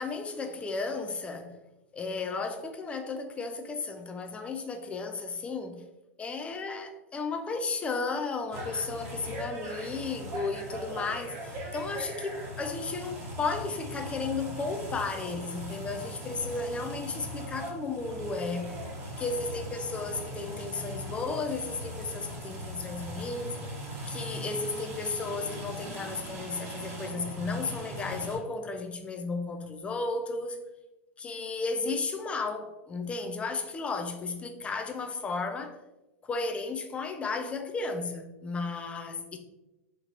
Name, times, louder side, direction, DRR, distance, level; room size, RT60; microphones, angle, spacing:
voice 1, 0.0-1.6 1.9-5.8 6.2-18.9 19.2-23.6 24.1-30.6 31.2-35.8 36.2-39.4, left 3 dB, 15° left, 0.4 m, -34 dB
sound 1, 8.5-28.4, equal, 35° right, 1.0 m, -39 dB
2.9 x 2.9 x 2.4 m
hypercardioid pair, 105°, 7 cm